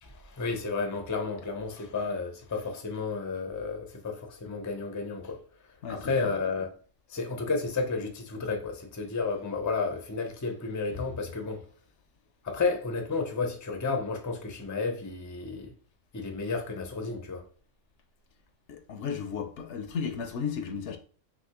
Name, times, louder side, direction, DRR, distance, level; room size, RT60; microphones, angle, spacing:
voice 1, 0.0-5.4 5.9-6.7 7.1-11.6 12.4-15.7 16.1-17.4, left 4 dB, 20° left, 0.5 m, -32 dB
voice 2, 5.8-6.3 18.7-21.0, left 6 dB, 70° left, 0.9 m, -34 dB
5.9 x 2.8 x 2.9 m
omnidirectional pair, 1.3 m